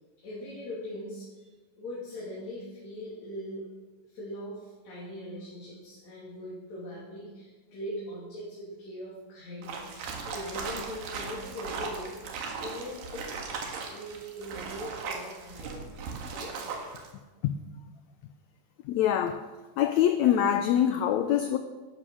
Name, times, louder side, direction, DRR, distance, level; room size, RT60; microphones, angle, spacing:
voice 1, 0.2-1.5 1.8-3.7 4.1-15.8 16.3-16.6, equal, 55° left, 3.9 m, -41 dB
sound 1, 9.6-17.1, right 5 dB, 85° right, 3.4 m, -38 dB
voice 2, 18.9-19.4 19.8-21.6, left 10 dB, 80° left, 1.6 m, -24 dB
12.0 x 11.5 x 6.4 m
omnidirectional pair, 3.9 m